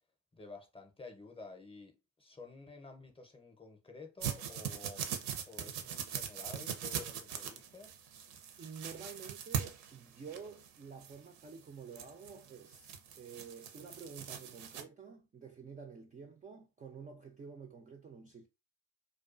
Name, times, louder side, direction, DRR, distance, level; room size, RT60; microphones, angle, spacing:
voice 1, 0.3-5.0 5.5-7.9, left 3 dB, 15° left, 0.6 m, -51 dB
sound 1, 4.2-14.8, right 8 dB, 70° right, 0.6 m, -41 dB
voice 2, 8.6-18.5, right 6 dB, 20° right, 0.3 m, -50 dB
2.3 x 2.3 x 2.4 m
hypercardioid pair, 50°, 40 cm